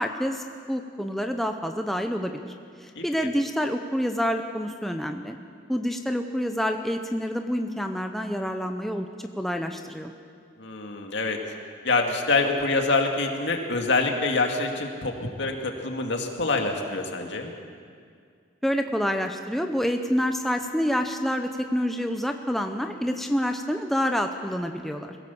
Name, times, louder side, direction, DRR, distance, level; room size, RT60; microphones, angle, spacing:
voice 1, 0.0-2.4 2.8-5.4 5.7-10.1 18.6-25.2, equal, ahead, 4 dB, 0.8 m, -27 dB
voice 2, 10.6-11.4 11.8-17.5, left 3 dB, 65° left, 3 dB, 2.3 m, -26 dB
22.5 x 16.5 x 7.1 m, 2.2 s
head